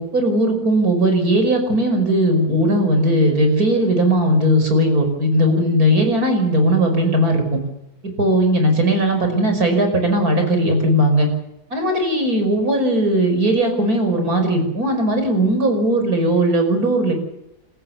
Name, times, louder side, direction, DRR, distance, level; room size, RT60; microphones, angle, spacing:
voice 1, 0.0-7.6 8.2-11.3 11.7-17.1, right 1 dB, 65° right, 5 dB, 6.0 m, -18 dB
28.5 x 14.5 x 7.1 m, 0.86 s
omnidirectional pair, 1.7 m